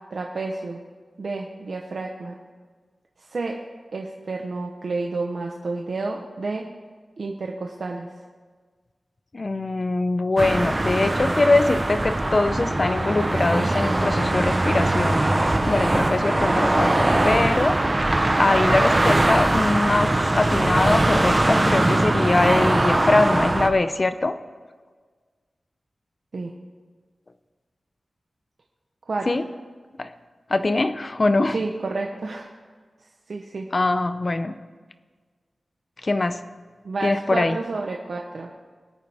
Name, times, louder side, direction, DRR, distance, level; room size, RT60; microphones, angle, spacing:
voice 1, 0.1-0.8 1.2-2.4 3.2-3.6 3.9-6.6 7.2-8.1 26.3-26.5 29.1-29.3 31.5-32.5 33.3-33.7 36.8-38.5, right 3 dB, 65° right, 1 dB, 1.0 m, -30 dB
voice 2, 9.3-15.2 15.7-18.1 18.4-24.4 29.3-29.4 30.0-30.1 30.5-31.6 33.7-34.5 36.0-36.4 37.0-37.6, left 2 dB, 40° left, 11 dB, 0.7 m, -22 dB
sound 1, 10.4-23.7, right 1 dB, 25° right, 1.0 m, -21 dB
22.0 x 9.2 x 3.6 m, 1.5 s
wide cardioid pair, 95°, 0 cm